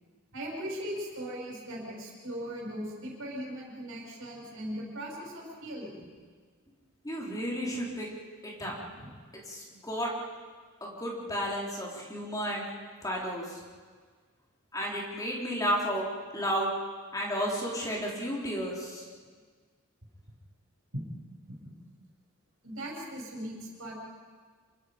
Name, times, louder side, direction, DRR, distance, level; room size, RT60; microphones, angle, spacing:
voice 1, 0.3-6.0 8.6-9.2 20.9-21.1 21.5-21.8 22.6-23.9, equal, 65° right, -2 dB, 6.4 m, -39 dB
voice 2, 7.0-8.1 8.4-8.7 9.5-10.1 10.8-12.6 13.0-13.5 14.7-16.0 16.3-16.7 17.1-19.0, equal, 15° left, -3 dB, 3.9 m, -32 dB
27.0 x 24.0 x 5.2 m, 1.5 s
head